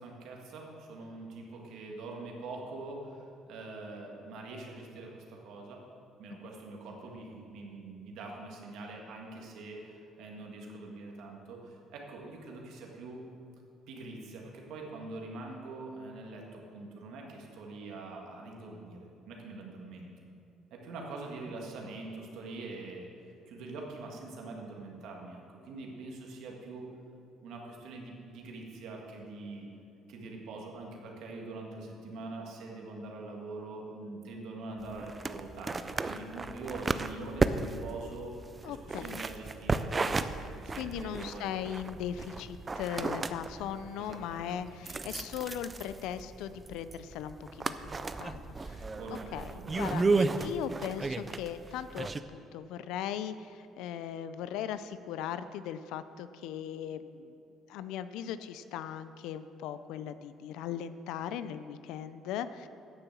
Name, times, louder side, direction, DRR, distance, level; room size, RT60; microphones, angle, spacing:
voice 1, 0.0-5.8 6.2-13.2 13.9-20.1 20.7-23.1 23.5-26.9 27.4-29.7 30.1-38.4 38.7-41.5 44.0-44.6 48.9-49.9, right 3 dB, 65° right, 0 dB, 1.9 m, -44 dB
sound 1, 34.8-52.2, right 3 dB, 20° right, 0.3 m, -34 dB
voice 2, 38.6-39.2 40.8-57.3 57.7-62.7, left 9 dB, 85° left, 13 dB, 0.5 m, -39 dB
9.5 x 6.9 x 7.4 m, 2.6 s
cardioid pair, 160°, 0 cm